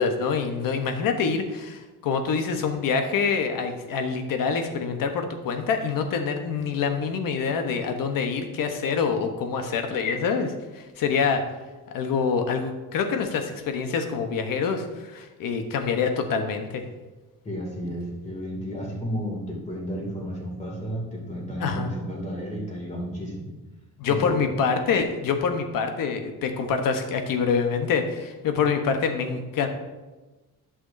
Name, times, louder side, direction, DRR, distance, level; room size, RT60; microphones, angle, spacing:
voice 1, 0.0-11.4 11.9-16.8 21.6-21.9 24.0-29.7, left 5 dB, 65° left, 6 dB, 1.0 m, -26 dB
voice 2, 17.4-23.5 24.1-24.4, equal, 20° left, -2 dB, 2.5 m, -32 dB
11.0 x 6.2 x 2.7 m, 1.2 s
cardioid pair, 135°, 36 cm